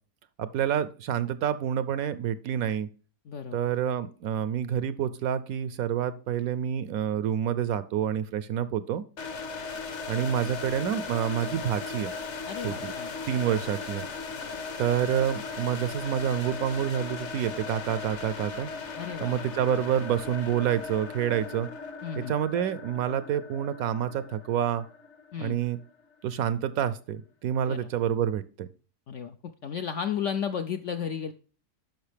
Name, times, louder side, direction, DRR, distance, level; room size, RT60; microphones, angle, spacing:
voice 1, 0.4-2.9 3.5-9.0 10.1-12.1 12.6-12.9 13.3-14.0 14.8-18.7 19.2-21.7 22.2-24.8 25.4-25.8 26.2-28.7, right 9 dB, 70° right, 14 dB, 0.9 m, -28 dB
voice 2, 3.3-3.6 12.5-13.1 19.0-19.4 22.0-22.3 25.3-25.6 27.7-27.9 29.1-31.3, left 7 dB, 70° left, 8 dB, 0.7 m, -33 dB
sound 1, 9.2-26.0, left 4 dB, 50° left, 1.2 m, -38 dB
10.5 x 6.1 x 3.3 m, 0.39 s
omnidirectional pair, 1.8 m